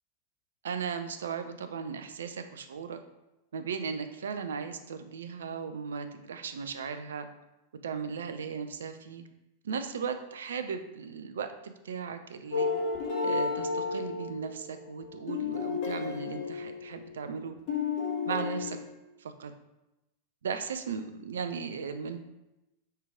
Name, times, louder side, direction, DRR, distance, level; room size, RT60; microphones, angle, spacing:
voice 1, 0.6-3.0 3.5-7.3 7.8-9.2 9.6-12.7 13.2-17.6 18.3-18.8 19.2-19.5 20.4-22.2, right 6 dB, 65° right, 8 dB, 0.5 m, -36 dB
sound 1, 12.5-17.4 17.7-18.8, left 4 dB, 45° left, 1.7 m, -32 dB
5.6 x 4.7 x 3.7 m, 0.96 s
figure-of-eight pair, 90°, 0 cm